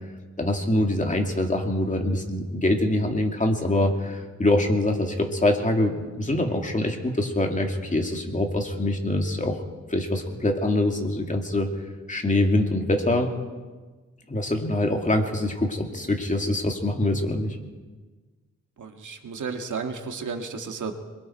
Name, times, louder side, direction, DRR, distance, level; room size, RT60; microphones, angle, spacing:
voice 1, 0.4-9.6 9.9-11.7 12.1-13.3 14.3-17.6, left 1 dB, 25° left, 2 dB, 2.5 m, -24 dB
voice 2, 18.8-20.9, right 5 dB, 75° right, 4 dB, 2.0 m, -33 dB
26.5 x 23.0 x 4.6 m, 1.3 s
wide cardioid pair, 105°, 30 cm